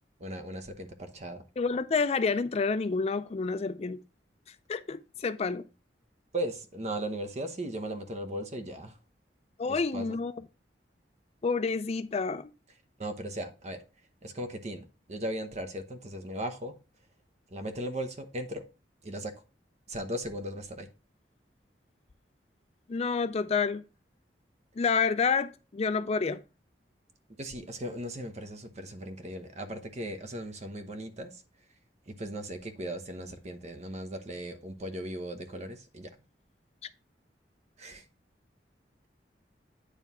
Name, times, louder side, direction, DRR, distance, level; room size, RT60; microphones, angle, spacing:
voice 1, 0.2-1.4 6.3-9.0 9.7-10.2 13.0-13.8 14.2-16.8 17.5-18.6 19.0-19.4 19.9-20.9 27.4-31.4 32.1-36.1 37.8-38.0, right 1 dB, 40° right, 1.0 m, -37 dB
voice 2, 1.6-4.0 4.7-5.7 9.6-10.3 11.4-12.5 22.9-23.8 24.8-26.4, left 4 dB, 35° left, 0.4 m, -29 dB
9.3 x 3.3 x 5.4 m
head